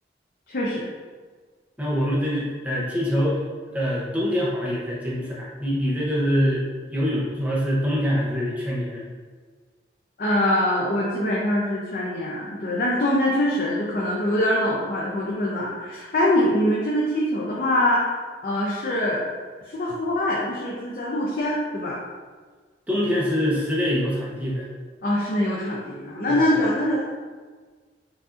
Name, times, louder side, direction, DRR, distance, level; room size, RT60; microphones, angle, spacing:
voice 1, 0.5-0.9 10.2-18.2 18.4-19.3 19.7-22.0 25.0-27.1, left 1 dB, 55° left, -5 dB, 0.5 m, -23 dB
voice 2, 1.8-3.4 3.7-9.0 22.9-24.7 26.3-26.4, equal, 10° right, -6 dB, 0.7 m, -24 dB
4.7 x 2.6 x 2.5 m, 1.5 s
head